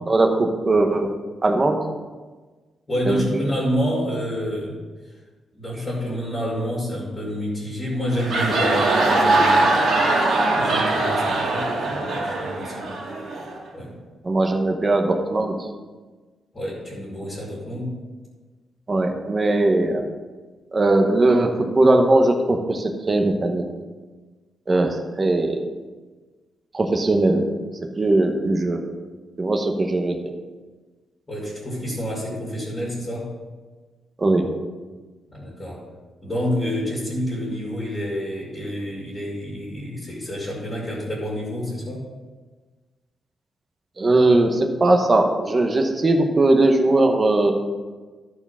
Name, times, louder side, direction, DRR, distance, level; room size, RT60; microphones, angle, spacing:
voice 1, 0.1-1.1 1.4-1.8 3.0-3.5 14.2-15.7 18.9-20.0 20.7-23.6 24.7-25.7 26.7-27.5 27.9-28.9 29.4-30.2 34.2-34.5 44.0-47.5, right 2 dB, 25° right, 4 dB, 1.0 m, -19 dB
voice 2, 2.9-4.8 5.5-9.8 10.5-13.0 13.7-13.9 16.5-17.9 31.3-33.3 35.3-35.8 36.2-42.0, equal, 20° left, -7 dB, 2.7 m, -28 dB
sound 1, 8.0-13.6, right 2 dB, 60° right, 2.4 m, -21 dB
13.5 x 4.8 x 5.7 m, 1.3 s
wide cardioid pair, 165°, 0 cm